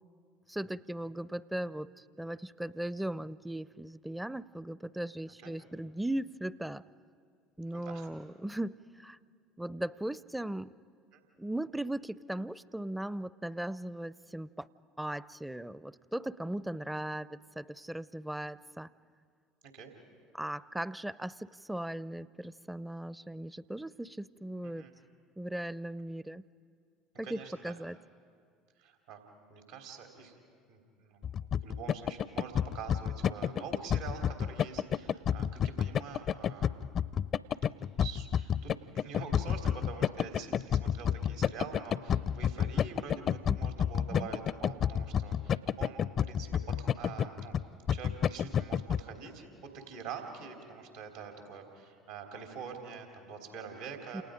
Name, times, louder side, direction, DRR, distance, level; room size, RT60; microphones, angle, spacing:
voice 1, 0.5-6.8 7.6-9.2 9.6-10.7 11.4-14.7 15.0-18.9 20.3-24.9 25.4-26.4 27.2-28.0 43.5-43.6 44.1-44.3 54.1-54.2, right 1 dB, 5° right, 19 dB, 0.5 m, -38 dB
voice 2, 7.7-8.1 11.1-11.2 19.6-19.9 24.6-24.9 27.2-27.7 28.8-30.4 30.7-36.7 38.0-47.6 47.9-54.2, right 6 dB, 80° right, 2 dB, 3.3 m, -46 dB
sound 1, 31.2-49.0, left 8 dB, 45° left, 0.5 m, -30 dB
29.0 x 28.0 x 5.2 m, 2.2 s
hypercardioid pair, 70°, 0 cm